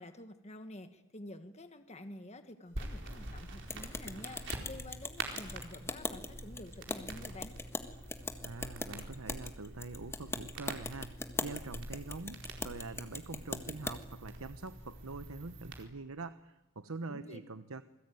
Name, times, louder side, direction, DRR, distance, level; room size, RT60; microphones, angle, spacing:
voice 1, 0.0-7.5 17.1-17.4, left 1 dB, 30° left, 8 dB, 1.4 m, -49 dB
sound 1, 2.7-15.8, right 2 dB, 60° right, 4.4 m, -46 dB
sound 2, 3.7-14.0, left 2 dB, 10° left, 1.6 m, -41 dB
voice 2, 8.4-17.8, right 3 dB, 80° right, 11 dB, 1.0 m, -44 dB
28.0 x 21.5 x 9.3 m, 0.97 s
head